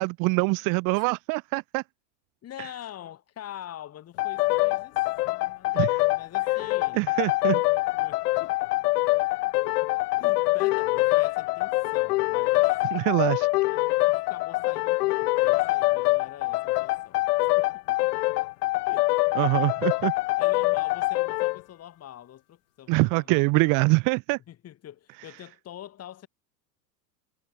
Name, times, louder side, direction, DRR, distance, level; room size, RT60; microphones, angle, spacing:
voice 1, 0.0-1.8 5.7-6.0 6.9-7.6 12.9-13.5 19.4-20.1 22.9-24.4, right 28 dB, 40° right, 0.8 m, -24 dB
voice 2, 2.4-7.1 7.9-8.7 9.6-9.9 10.2-12.7 13.7-17.2 17.6-18.0 18.9-19.1 20.4-23.5 24.5-26.3, left 11 dB, 30° left, 4.6 m, -44 dB
sound 1, 4.2-21.6, left 21 dB, 65° left, 1.6 m, -24 dB
supercardioid pair, 130°, 50 cm